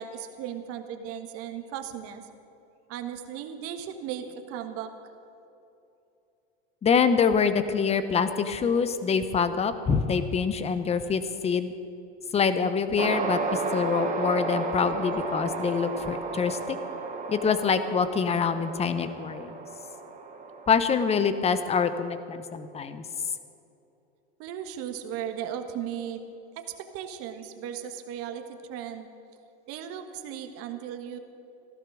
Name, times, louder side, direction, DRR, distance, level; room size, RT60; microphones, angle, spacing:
voice 1, 0.0-2.3 2.9-4.9 24.4-26.2 26.5-26.7 26.9-29.1 29.7-31.2, right 9 dB, 45° right, 7 dB, 1.5 m, -36 dB
voice 2, 6.8-11.7 12.3-13.4 13.7-16.8 17.3-19.5 20.7-23.0, left 6 dB, 20° left, 11 dB, 0.9 m, -25 dB
sound 1, 13.0-21.5, right 4 dB, 25° right, 1.4 m, -33 dB
15.0 x 12.5 x 6.3 m, 2.8 s
hypercardioid pair, 120°, 33 cm